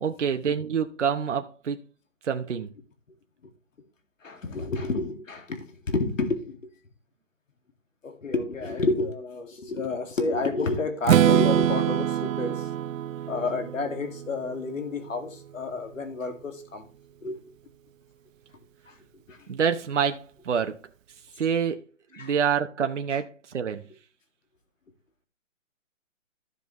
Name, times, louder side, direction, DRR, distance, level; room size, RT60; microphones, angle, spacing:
voice 1, 0.0-1.8 2.2-2.7 19.5-20.8 21.4-21.8 22.1-23.9, right 7 dB, 65° right, 1.0 m, -27 dB
voice 2, 4.2-6.7 8.0-12.7 13.3-16.9 17.2-17.4 18.9-19.0 19.3-19.4 22.1-22.3 23.1-23.2, left 3 dB, 80° left, 2.3 m, -30 dB
Strum, 11.0-15.0, right 10 dB, 80° right, 0.5 m, -24 dB
14.5 x 5.4 x 3.1 m
hypercardioid pair, 175°, 39 cm